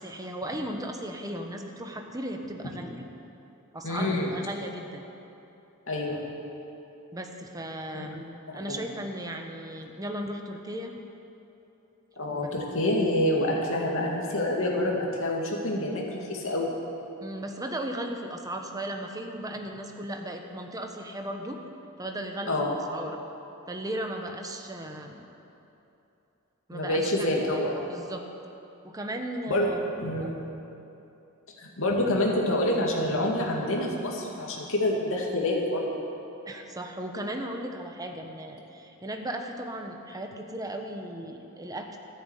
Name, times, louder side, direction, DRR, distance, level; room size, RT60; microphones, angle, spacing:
voice 1, 0.0-3.1 3.7-5.0 7.1-8.2 8.5-10.9 12.3-12.4 17.2-21.6 22.0-23.2 23.7-25.3 26.7-28.2 28.8-29.8 30.2-30.3 36.5-42.0, right 1 dB, 15° right, 3 dB, 1.2 m, -36 dB
voice 2, 3.8-4.3 5.9-6.2 7.9-8.1 8.7-8.8 12.2-16.8 22.5-22.7 26.7-27.8 29.5-29.7 30.0-30.4 31.6-35.9, left 1 dB, 65° left, -1 dB, 2.5 m, -27 dB
14.0 x 10.5 x 8.3 m, 2.9 s
head